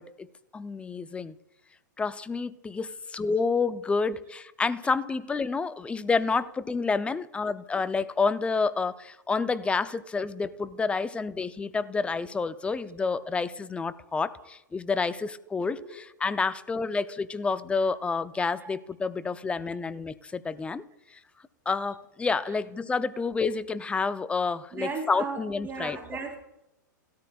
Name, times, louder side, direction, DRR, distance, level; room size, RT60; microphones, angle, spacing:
voice 1, 0.0-1.3 2.0-20.8 21.7-26.0, left 4 dB, 10° left, 0.5 m, -29 dB
voice 2, 12.6-13.0 14.4-14.5 15.7-16.0 18.6-18.7 19.7-19.8 22.4-22.6 24.7-26.4, right 4 dB, 20° right, 3.5 m, -38 dB
16.5 x 13.0 x 2.4 m
hypercardioid pair, 115°, 10 cm